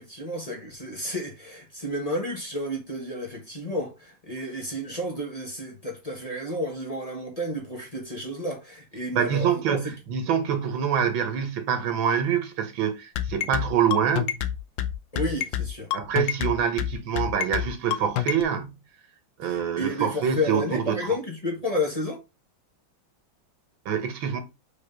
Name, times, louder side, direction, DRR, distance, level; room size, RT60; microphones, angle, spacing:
voice 1, 0.0-9.9 15.1-15.9 19.4-22.2, left 1 dB, 20° left, 1.4 m, -31 dB
voice 2, 9.1-14.4 15.9-18.7 19.4-21.1 23.9-24.4, right 8 dB, 85° right, 1.9 m, -25 dB
sound 1, 13.2-18.4, left 11 dB, 80° left, 1.5 m, -27 dB
5.2 x 3.9 x 5.2 m
omnidirectional pair, 2.1 m